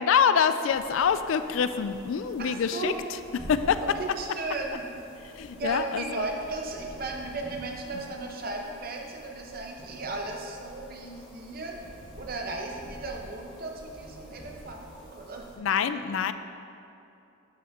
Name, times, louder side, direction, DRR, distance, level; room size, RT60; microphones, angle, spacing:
voice 1, 0.0-3.2 3.5-3.8 5.4-6.3 15.6-16.3, left 7 dB, 70° left, 11 dB, 0.3 m, -25 dB
sound 1, 0.7-15.6, equal, 20° left, 1.4 m, -48 dB
voice 2, 2.4-3.0 3.8-4.8 5.6-11.7 12.2-15.4, right 3 dB, 45° right, 1 dB, 0.9 m, -36 dB
11.5 x 5.6 x 3.6 m, 2.7 s
head